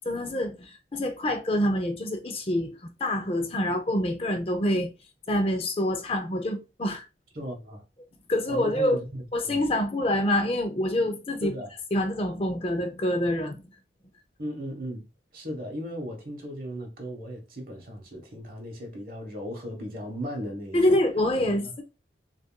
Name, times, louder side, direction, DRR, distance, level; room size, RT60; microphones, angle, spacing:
voice 1, 0.1-4.9 5.3-7.1 8.3-9.0 9.3-11.5 11.9-13.6 20.7-21.8, left 1 dB, 30° left, 0.5 m, -26 dB
voice 2, 7.3-7.8 8.5-9.6 11.4-11.7 14.4-15.0 15.3-21.0 21.4-21.7, equal, 50° right, 1.2 m, -36 dB
6.3 x 2.5 x 2.2 m
head